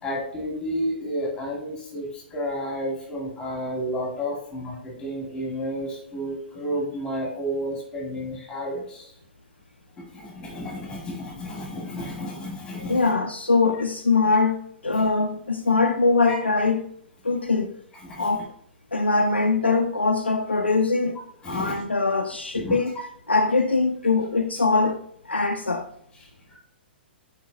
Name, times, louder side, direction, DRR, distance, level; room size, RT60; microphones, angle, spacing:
voice 1, 0.0-9.1 10.0-13.1 15.0-15.1 16.3-16.4 18.0-18.3 21.4-21.8 22.5-22.8 26.5-26.6, equal, 15° left, 2.1 m, -31 dB
voice 2, 12.9-16.9 17.2-17.7 18.2-18.5 18.9-22.9 23.3-25.9, left 3 dB, 85° left, 0.4 m, -22 dB
7.2 x 4.7 x 2.9 m
figure-of-eight pair, 115°, 6 cm